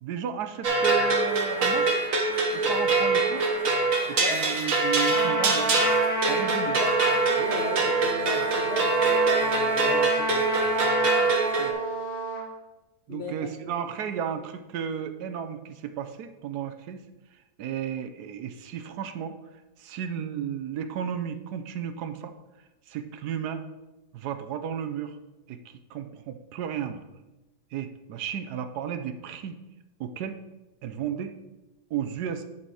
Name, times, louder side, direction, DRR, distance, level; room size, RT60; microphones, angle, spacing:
voice 1, 0.0-1.9 2.5-3.5 4.1-5.7 6.3-6.8 11.6-11.8 13.1-17.0 17.6-19.3 19.8-22.3 22.9-23.7 24.1-25.2 25.5-27.0 27.7-29.6 30.0-30.4 30.8-31.3 31.9-32.4, right 8 dB, 75° right, 8 dB, 1.2 m, -33 dB
sound 1, 0.6-11.7, right 3 dB, 55° right, 1.4 m, -24 dB
Trumpet, 5.1-12.4, right 2 dB, 80° left, 2.5 m, -29 dB
voice 2, 7.4-10.8 13.1-13.8, left 1 dB, 50° left, 1 dB, 0.8 m, -37 dB
10.0 x 4.3 x 4.7 m, 1.0 s
omnidirectional pair, 1.8 m